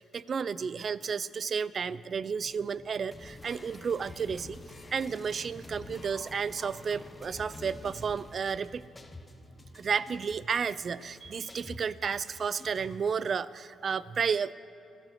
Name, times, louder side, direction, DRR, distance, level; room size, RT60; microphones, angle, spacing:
voice 1, 0.0-4.6 4.9-8.8 9.7-14.5, right 6 dB, 45° right, 18 dB, 0.4 m, -32 dB
sound 1, 2.4-12.2, equal, 50° left, 2.5 m, -57 dB
sound 2, 3.1-13.1, left 2 dB, 20° left, 1.0 m, -48 dB
15.5 x 10.5 x 6.5 m, 2.6 s
cardioid pair, 90°, 0 cm